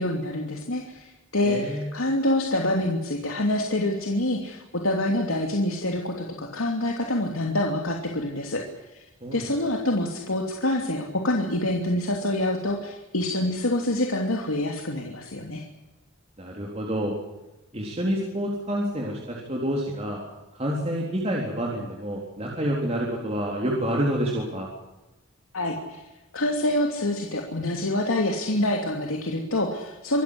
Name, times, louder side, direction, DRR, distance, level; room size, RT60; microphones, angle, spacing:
voice 1, 0.0-8.6 8.9-9.0 9.3-15.6 25.5-26.0 26.3-30.2, left 1 dB, 90° left, 2 dB, 2.9 m, -26 dB
voice 2, 1.4-1.9 9.2-9.5 16.4-17.1 17.7-20.2 20.5-24.7, equal, 30° right, -2 dB, 3.9 m, -28 dB
26.0 x 14.0 x 9.9 m, 1.0 s
head